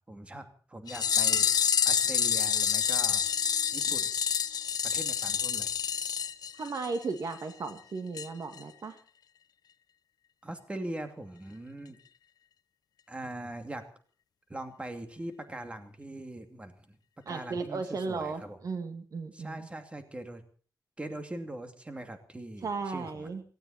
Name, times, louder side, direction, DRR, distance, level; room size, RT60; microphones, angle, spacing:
voice 1, 0.1-1.5 1.8-3.2 3.7-4.1 4.8-5.7 10.4-12.0 13.1-13.8 14.5-17.0 17.3-18.6 19.3-20.4 21.0-23.3, right 1 dB, 15° right, 7 dB, 2.6 m, -41 dB
sound 1, 0.9-7.0 7.3-7.4 7.7-7.8 8.2-8.3 8.6-8.7, left 8 dB, 75° left, 0.9 m, -28 dB
voice 2, 6.6-9.0 17.3-19.7 22.6-23.4, right 4 dB, 60° right, 8 dB, 2.2 m, -35 dB
18.0 x 16.5 x 4.3 m, 0.42 s
wide cardioid pair, 120°, 7 cm